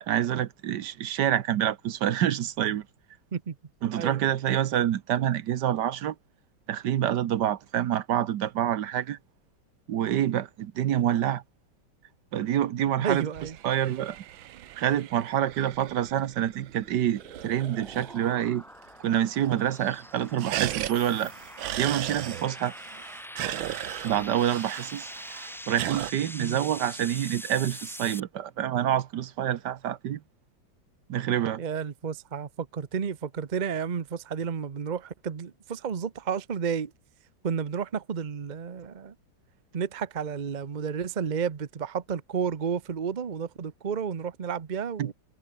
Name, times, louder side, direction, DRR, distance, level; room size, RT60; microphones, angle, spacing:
voice 1, 0.0-2.9 3.8-6.1 6.7-9.2 9.9-11.4 12.3-13.3 13.6-14.2 14.8-18.6 19.0-21.3 21.8-22.7 24.0-25.1 25.7-30.2 31.1-31.6 45.0-45.1, right 11 dB, 65° right, 1.4 m, -27 dB
voice 2, 13.0-13.6 26.4-26.6 31.6-36.9 37.4-39.1 39.7-45.1, right 7 dB, 45° right, 0.6 m, -31 dB
sound 1, 13.2-18.5 18.8-18.9 19.2-19.7 19.9-26.1, right 13 dB, 85° right, 1.6 m, -37 dB
sound 2, 16.3-28.2, equal, ahead, 0.9 m, -44 dB
omnidirectional pair, 2.1 m